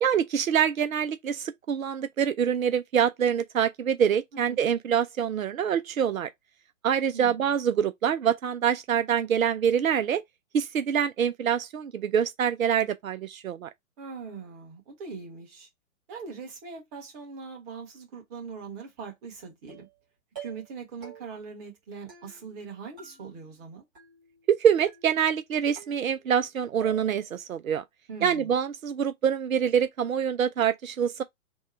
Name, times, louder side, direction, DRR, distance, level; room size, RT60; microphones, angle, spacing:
voice 1, 0.0-6.3 6.8-10.2 10.5-13.7 24.5-27.8 28.2-31.2, right 8 dB, 85° right, 0.5 m, -25 dB
voice 2, 7.1-7.5 14.0-15.7 16.1-19.9 20.4-23.9 28.1-28.6, right 5 dB, 30° right, 1.5 m, -41 dB
sound 1, 19.7-20.0 20.3-20.8 21.0-21.5 22.1-22.7 23.0-23.6 23.9-24.5 24.9-25.4 25.8-26.5 26.8-27.3, right 7 dB, 5° right, 0.3 m, -48 dB
3.5 x 2.2 x 4.3 m
figure-of-eight pair, 125°, 40 cm